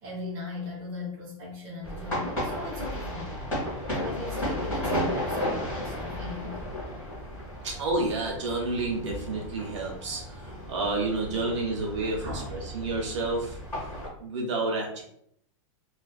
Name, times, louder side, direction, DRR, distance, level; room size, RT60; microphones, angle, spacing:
voice 1, 0.0-3.4 3.9-6.7 12.2-12.6, left 2 dB, 20° right, -5 dB, 0.6 m, -38 dB
sound 1, 1.8-14.1, equal, 15° left, 1.2 m, -34 dB
voice 2, 7.6-13.6 14.2-15.0, right 2 dB, 60° right, 0 dB, 0.8 m, -30 dB
2.4 x 2.3 x 2.3 m, 0.70 s
supercardioid pair, 170°, 17 cm